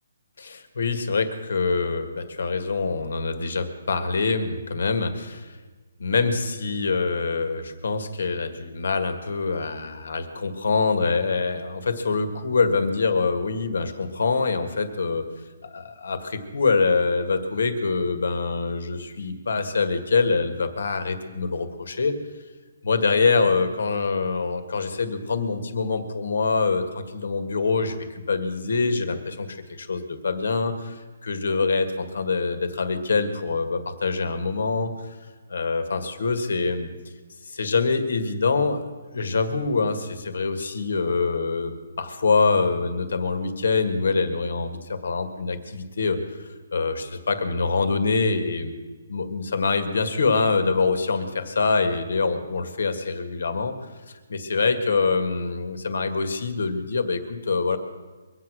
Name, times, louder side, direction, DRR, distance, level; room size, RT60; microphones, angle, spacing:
voice 1, 0.4-5.6 6.0-15.3 15.6-22.2 22.8-28.0 28.3-34.9 35.5-36.9 37.4-38.8 39.1-48.7 49.1-53.8 54.1-57.8, left 4 dB, 70° left, 9 dB, 1.8 m, -25 dB
23.0 x 8.3 x 6.3 m, 1.3 s
hypercardioid pair, 175°, 0 cm